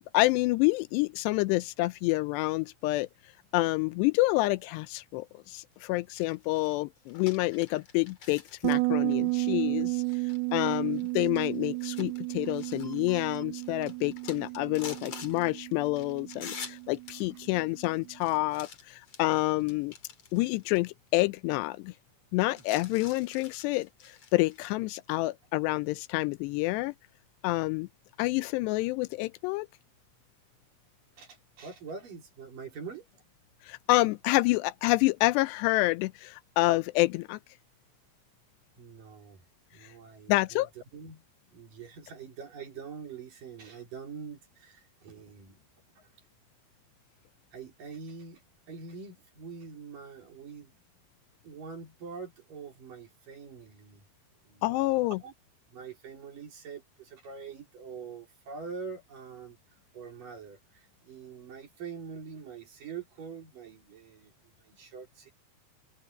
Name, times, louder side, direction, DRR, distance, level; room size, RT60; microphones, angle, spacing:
voice 1, 0.0-3.1 3.5-10.0 10.5-19.9 20.3-21.9 22.3-26.9 27.4-27.9 28.2-29.7 33.6-37.4 40.3-40.7 54.6-55.2, left 20 dB, 85° left, 2.7 m, -28 dB
sound 1, 6.1-20.8 21.1-21.2 22.5-24.7, left 6 dB, 40° left, 2.9 m, -48 dB
Bass guitar, 8.6-18.0, right 29 dB, 90° right, 2.2 m, -33 dB
voice 2, 31.2-33.1 38.8-39.5 39.7-40.6 40.9-41.2 41.5-45.6 46.0-46.1 47.5-50.7 51.4-54.1 54.4-55.3 55.7-59.6 59.9-65.3, right 5 dB, 50° right, 5.6 m, -44 dB
omnidirectional pair, 4.9 m